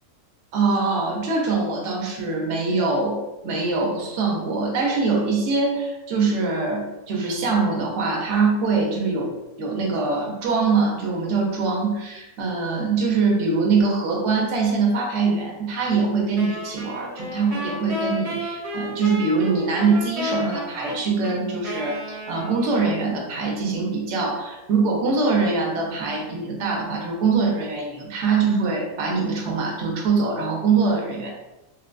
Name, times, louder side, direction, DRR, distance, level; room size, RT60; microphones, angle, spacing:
voice 1, 0.5-9.3 9.6-31.3, right 4 dB, 60° right, 0 dB, 0.9 m, -23 dB
Wind instrument woodwind instrument, 16.4-22.9, left 1 dB, 40° right, 0.5 m, -32 dB
3.7 x 2.2 x 2.4 m, 1.0 s
omnidirectional pair, 1.7 m